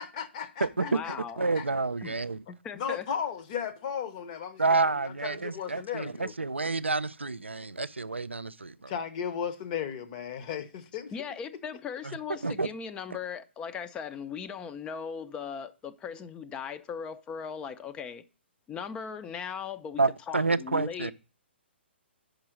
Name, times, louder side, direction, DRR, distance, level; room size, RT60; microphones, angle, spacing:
voice 1, 0.0-1.1 1.6-1.7 2.7-6.3 8.9-11.1, left 7 dB, 35° left, 0.8 m, -35 dB
voice 2, 0.8-1.4 2.0-2.1 2.5-3.1 11.1-18.2 18.7-21.1, left 7 dB, 15° left, 0.4 m, -38 dB
voice 3, 1.4-2.4 4.6-8.9 12.0-12.2 12.4-12.7 20.0-21.1, right 3 dB, 80° right, 0.4 m, -29 dB
6.1 x 5.1 x 5.9 m
figure-of-eight pair, 125°, 6 cm